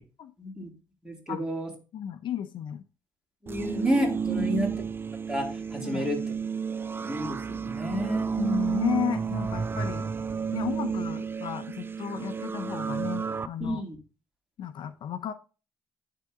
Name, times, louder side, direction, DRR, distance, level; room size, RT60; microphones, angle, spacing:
voice 1, 0.4-0.7 1.0-1.7 3.4-4.7 5.3-6.2 6.9-8.3 13.6-14.0, equal, 10° right, -1 dB, 3.2 m, -30 dB
voice 2, 1.9-2.8 4.3-4.5 5.8-6.1 8.0-10.1 10.5-13.8 14.6-15.3, left 9 dB, 65° left, 11 dB, 0.6 m, -33 dB
sound 1, 3.5-13.5, right 6 dB, 25° right, 0.4 m, -31 dB
10.5 x 3.8 x 3.7 m, 0.33 s
cardioid pair, 85°, 9 cm